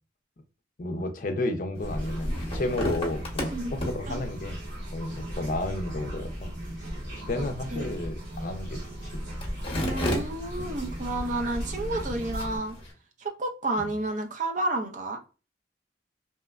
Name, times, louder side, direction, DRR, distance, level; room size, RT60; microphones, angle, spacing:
voice 1, 0.8-4.6 4.9-6.5 7.3-9.2, left 2 dB, 45° left, 0.4 m, -32 dB
sound 1, 1.8-12.9, left 1 dB, 30° left, 0.8 m, -37 dB
sound 2, 1.8-12.6, equal, 85° right, 1.2 m, -36 dB
voice 2, 3.4-3.8 4.1-4.2 7.7-7.9 9.8-12.8 13.2-15.2, right 2 dB, 40° right, 0.5 m, -31 dB
2.9 x 2.1 x 2.3 m
head